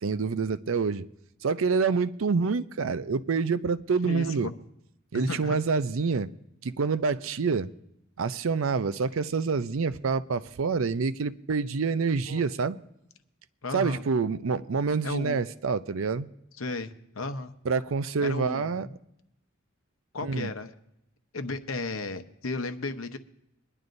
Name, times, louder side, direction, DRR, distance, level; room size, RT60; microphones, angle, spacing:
voice 1, 0.0-1.1 1.4-4.5 5.1-6.3 6.6-7.7 8.2-12.8 13.7-16.3 17.6-18.9 20.2-20.5, right 4 dB, 70° right, 0.5 m, -27 dB
voice 2, 4.0-4.5 5.1-5.6 12.3-12.4 13.6-14.0 15.0-15.4 16.6-17.5 18.2-18.9 20.1-20.7 21.3-23.2, left 3 dB, 75° left, 0.9 m, -34 dB
23.0 x 11.0 x 2.6 m
head